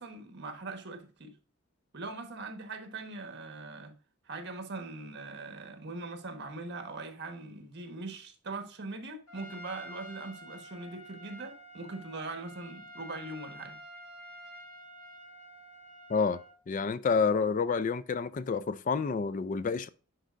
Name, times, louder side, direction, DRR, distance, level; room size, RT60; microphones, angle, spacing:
voice 1, 0.0-1.3 1.9-3.9 4.2-13.8, right 3 dB, 55° right, 1.2 m, -41 dB
Trumpet, 9.3-16.6, equal, 85° left, 2.3 m, -49 dB
voice 2, 16.1-16.4 16.7-19.9, left 5 dB, 40° left, 0.3 m, -29 dB
9.9 x 4.6 x 2.5 m
head